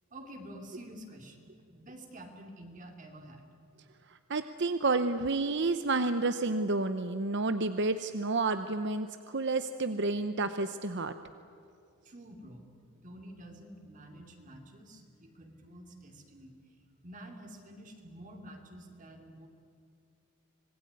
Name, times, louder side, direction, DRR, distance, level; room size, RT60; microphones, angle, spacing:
voice 1, 0.1-3.5 12.0-12.7 12.9-16.5 17.0-19.5, right 1 dB, 35° right, 3 dB, 2.7 m, -49 dB
voice 2, 4.1-11.1, right 3 dB, 50° right, 10 dB, 0.8 m, -30 dB
26.0 x 19.5 x 9.7 m, 2.6 s
head